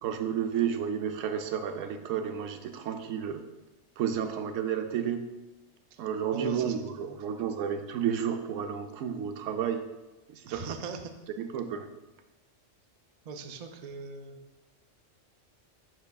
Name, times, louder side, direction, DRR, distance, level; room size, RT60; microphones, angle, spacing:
voice 1, 0.0-3.4 4.0-5.2 6.0-9.9 10.3-10.6 11.4-11.9, right 8 dB, 80° right, 7 dB, 1.0 m, -31 dB
voice 2, 6.3-7.2 10.5-11.0 13.3-14.4, right 4 dB, 55° right, 6 dB, 0.4 m, -40 dB
7.7 x 6.7 x 2.3 m, 1.1 s
omnidirectional pair, 1.3 m